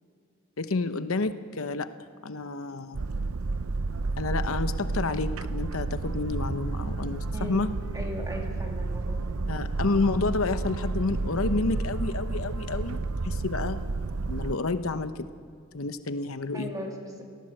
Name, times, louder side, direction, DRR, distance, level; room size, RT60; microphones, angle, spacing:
voice 1, 0.6-1.9 2.2-3.0 4.2-7.7 9.5-13.8 14.3-15.3 15.7-16.7, left 3 dB, 75° left, 11 dB, 0.9 m, -29 dB
Boat Water vehicle, 2.9-14.6, right 3 dB, 85° right, 0.7 m, -31 dB
voice 2, 7.3-7.7 7.9-9.2 16.5-17.2, equal, 15° right, 1 dB, 3.0 m, -37 dB
23.5 x 17.0 x 7.8 m, 2.3 s
head